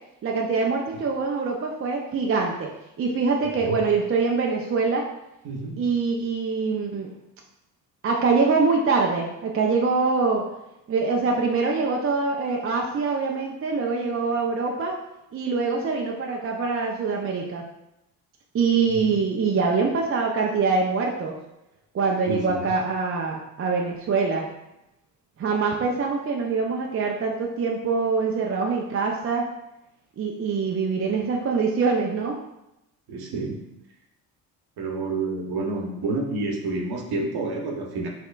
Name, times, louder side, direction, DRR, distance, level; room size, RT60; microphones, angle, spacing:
voice 1, 0.2-2.7 3.0-5.0 5.8-7.1 8.0-10.4 10.9-15.0 15.3-17.6 18.5-21.3 21.9-24.5 25.4-29.5 30.2-32.4, right 4 dB, 30° right, 0 dB, 0.5 m, -24 dB
voice 2, 5.4-5.9 18.9-19.0 22.3-22.7 33.1-33.6 34.8-38.1, right 3 dB, 50° right, 1 dB, 1.0 m, -29 dB
5.6 x 2.7 x 2.4 m, 0.88 s
hypercardioid pair, 55°, 48 cm